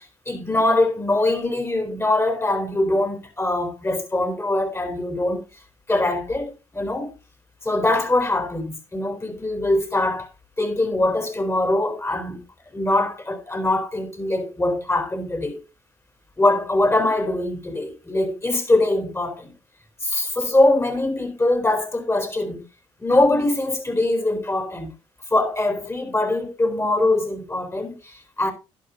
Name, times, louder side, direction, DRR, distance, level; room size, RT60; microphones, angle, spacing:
voice 1, 0.0-5.4 5.9-7.1 7.6-10.3 10.6-12.4 12.7-15.6 16.4-19.5 20.0-22.7 23.0-24.9 25.3-28.5, left 2 dB, 20° left, 4.3 m, -22 dB
11.5 x 11.5 x 2.7 m
supercardioid pair, 65°, 12 cm